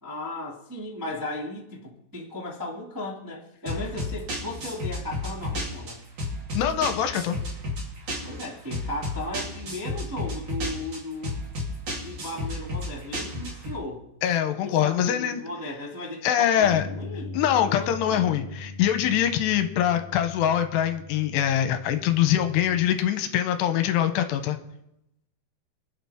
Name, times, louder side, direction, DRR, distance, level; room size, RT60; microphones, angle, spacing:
voice 1, 0.0-6.0 8.2-11.4 12.0-14.1 14.6-18.3, left 2 dB, 20° right, -5 dB, 0.5 m, -36 dB
sound 1, 3.7-13.8, left 1 dB, 40° right, 4.0 m, -32 dB
voice 2, 6.5-7.4 14.2-15.4 16.2-16.8 17.3-24.6, left 10 dB, 80° left, 8 dB, 2.8 m, -23 dB
Bass guitar, 16.6-22.9, left 2 dB, 60° left, 2.0 m, -40 dB
25.5 x 9.0 x 3.6 m, 0.83 s
omnidirectional pair, 5.0 m